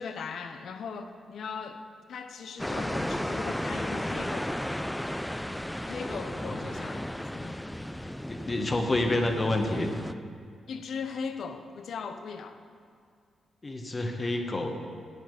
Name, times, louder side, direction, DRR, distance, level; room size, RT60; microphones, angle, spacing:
voice 1, 0.0-1.8 2.1-4.6 5.9-7.0 7.3-7.7 8.0-8.1 10.7-12.6, left 5 dB, 70° left, 8 dB, 0.7 m, -38 dB
sound 1, 2.6-10.1, left 1 dB, 5° left, 0.4 m, -34 dB
voice 2, 8.3-9.9 13.6-14.8, left 2 dB, 35° left, 4 dB, 1.4 m, -28 dB
9.7 x 9.1 x 4.9 m, 2.2 s
supercardioid pair, 45°, 0 cm